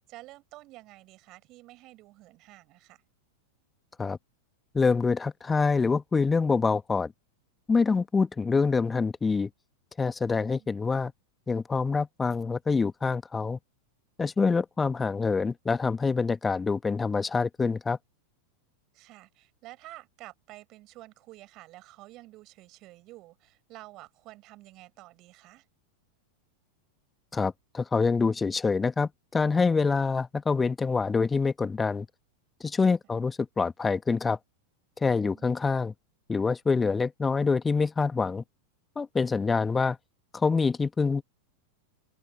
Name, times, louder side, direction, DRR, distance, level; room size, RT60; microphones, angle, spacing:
voice 1, 0.0-3.0 10.3-10.9 18.9-25.6 35.1-35.7, right 18 dB, 40° right, 6.8 m, -50 dB
voice 2, 4.7-7.1 7.7-9.5 10.0-11.1 11.5-13.6 14.2-18.0 27.3-32.1 32.6-34.4 35.0-35.9 36.3-38.4 38.9-40.0 40.3-41.2, left 4 dB, 15° left, 1.7 m, -26 dB
open air
figure-of-eight pair, 90°, 0 cm